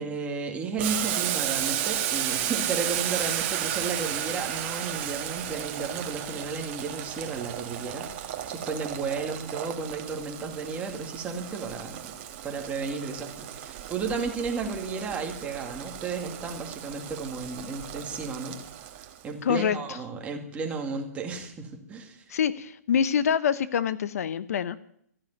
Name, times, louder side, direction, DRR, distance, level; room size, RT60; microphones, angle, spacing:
voice 1, 0.0-12.0 12.4-22.2, right 4 dB, 15° right, 3 dB, 2.2 m, -33 dB
Boiling, 0.8-19.2, right 11 dB, 40° right, 1.5 m, -33 dB
voice 2, 19.4-19.8 22.3-24.8, left 8 dB, 65° left, 15 dB, 0.8 m, -25 dB
14.0 x 7.1 x 9.3 m, 0.69 s
hypercardioid pair, 150°, 9 cm